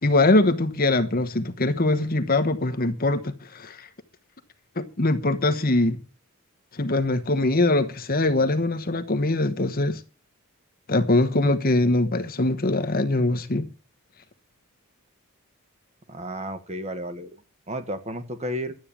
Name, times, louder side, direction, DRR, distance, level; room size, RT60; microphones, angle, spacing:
voice 1, 0.0-3.9 4.8-6.0 6.7-10.0 10.9-13.7, left 2 dB, 40° left, 1.1 m, -22 dB
voice 2, 16.1-17.3 17.7-18.8, equal, 30° right, 1.5 m, -32 dB
12.5 x 8.8 x 8.7 m
head